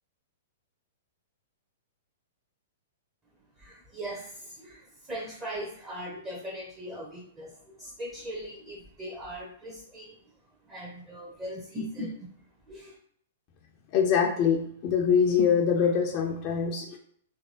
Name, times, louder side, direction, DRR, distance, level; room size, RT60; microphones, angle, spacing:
voice 1, 3.6-10.2 10.6-12.3 12.7-13.0, equal, 20° right, -3 dB, 0.5 m, -39 dB
voice 2, 13.9-17.0, left 7 dB, 35° left, 2 dB, 0.4 m, -24 dB
2.8 x 2.5 x 2.8 m, 0.63 s
figure-of-eight pair, 105°, 0 cm